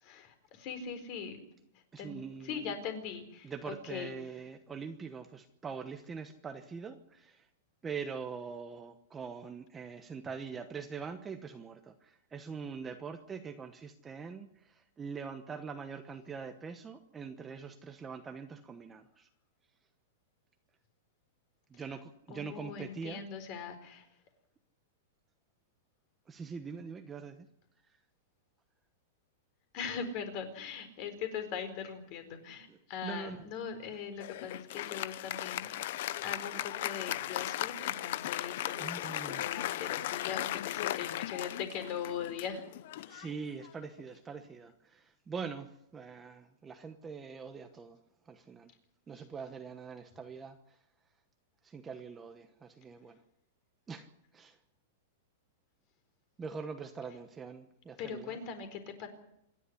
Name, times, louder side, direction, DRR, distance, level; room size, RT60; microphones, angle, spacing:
voice 1, 0.0-1.4 2.0-4.1 21.7-21.8 22.3-24.1 29.7-35.7 36.2-42.7 58.0-59.1, left 7 dB, 35° left, 9 dB, 4.3 m, -41 dB
voice 2, 1.9-2.7 3.4-7.5 7.8-19.3 21.7-23.2 26.3-27.5 32.7-33.5 38.8-39.5 43.1-48.0 48.3-48.7 49.1-50.8 51.6-53.2 53.9-54.1 54.3-54.6 56.4-58.4, right 5 dB, 10° right, 7 dB, 1.0 m, -43 dB
Applause, 34.2-44.0, left 14 dB, 50° left, 0.7 m, -37 dB
27.0 x 11.5 x 9.9 m, 0.77 s
supercardioid pair, 170°, 0 cm